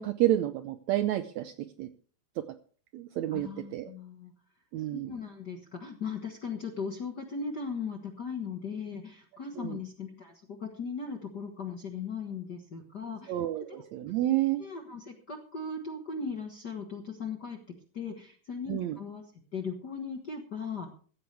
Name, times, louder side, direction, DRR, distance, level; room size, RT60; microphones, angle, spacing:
voice 1, 0.0-1.5 1.8-1.9 2.9-3.9 4.7-5.1 9.6-9.8 13.3-14.6 18.7-19.0, right 14 dB, 75° right, 10 dB, 1.7 m, -29 dB
voice 2, 3.3-4.3 4.9-13.3 13.7-13.8 14.6-17.6 17.9-19.2 19.5-20.9, left 5 dB, 50° left, 4 dB, 1.3 m, -38 dB
16.0 x 14.0 x 3.3 m, 0.42 s
omnidirectional pair, 3.8 m